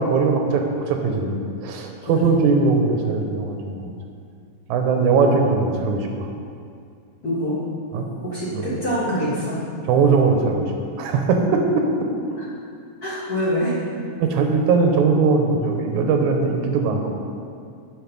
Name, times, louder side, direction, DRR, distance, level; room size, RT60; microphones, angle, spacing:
voice 1, 0.0-1.3 1.6-3.9 4.7-6.1 7.9-8.1 8.5-8.7 9.9-10.6 11.0-11.8 14.2-17.1, right 4 dB, 85° right, 3 dB, 2.3 m, -20 dB
voice 2, 2.0-2.4 7.2-7.6 8.2-9.6 12.4-12.5 13.0-13.7, equal, 35° left, -8 dB, 1.8 m, -25 dB
10.5 x 5.6 x 5.3 m, 2.3 s
omnidirectional pair, 3.4 m